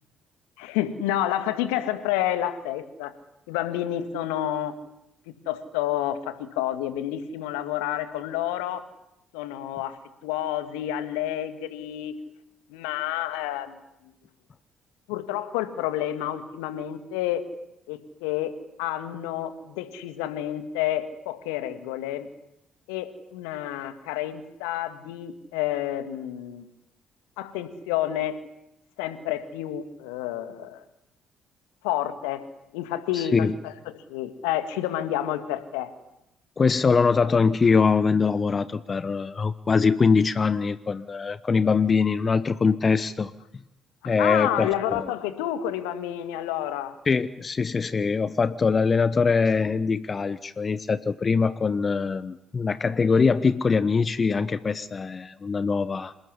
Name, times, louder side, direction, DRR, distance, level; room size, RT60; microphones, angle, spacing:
voice 1, 0.6-3.1 3.5-4.8 5.3-8.8 9.3-10.0 10.2-12.1 12.7-13.8 15.1-17.4 17.9-18.5 18.8-22.3 22.9-26.6 27.4-28.4 29.0-30.8 31.8-32.5 32.7-35.9 44.0-46.9, left 12 dB, 70° left, 11 dB, 2.0 m, -29 dB
voice 2, 33.1-33.5 36.6-43.3 44.0-45.1 47.1-56.1, left 5 dB, 35° left, 15 dB, 1.0 m, -23 dB
27.0 x 19.0 x 10.0 m, 0.85 s
figure-of-eight pair, 45°, 0 cm